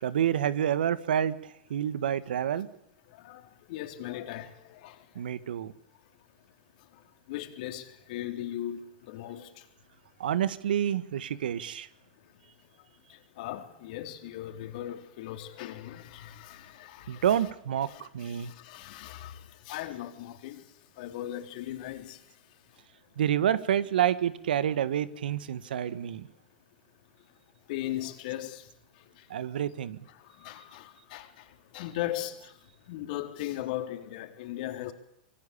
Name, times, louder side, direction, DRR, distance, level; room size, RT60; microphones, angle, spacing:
voice 1, 0.0-2.7 5.1-5.7 10.2-11.9 17.1-18.5 23.2-26.3 29.3-30.0, right 10 dB, 75° right, 1.7 m, -28 dB
voice 2, 3.7-5.0 7.3-9.5 13.1-17.5 17.8-20.6 21.0-22.2 27.7-28.6 30.4-31.5 31.7-32.5 32.9-34.9, left 13 dB, 60° left, 3.9 m, -38 dB
25.0 x 23.5 x 8.7 m
hypercardioid pair, 105°, 5 cm